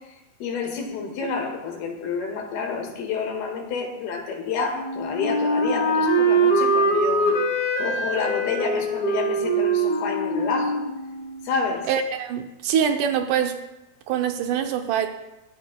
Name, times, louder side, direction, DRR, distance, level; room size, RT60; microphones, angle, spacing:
voice 1, 0.4-7.3 7.8-10.8 11.5-11.9, left 5 dB, 75° left, 2 dB, 3.6 m, -29 dB
Wind instrument woodwind instrument, 4.7-11.6, right 2 dB, 40° left, 2.6 m, -23 dB
voice 2, 11.9-13.6 14.1-15.1, right 8 dB, 80° right, 6 dB, 1.8 m, -24 dB
21.5 x 13.0 x 2.3 m, 0.98 s
omnidirectional pair, 4.5 m